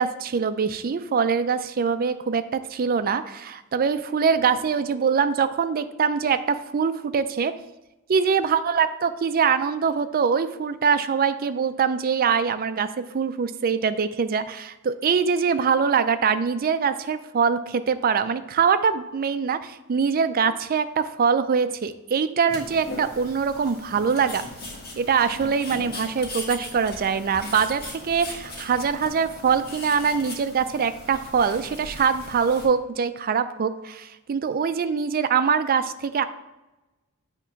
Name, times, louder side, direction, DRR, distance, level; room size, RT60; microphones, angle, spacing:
voice 1, 0.0-7.6 8.1-24.4 25.0-36.3, right 6 dB, 45° right, 11 dB, 0.4 m, -23 dB
sound 1, 22.5-32.7, left 2 dB, 50° left, 1.7 m, -39 dB
8.4 x 3.0 x 5.7 m, 1.0 s
head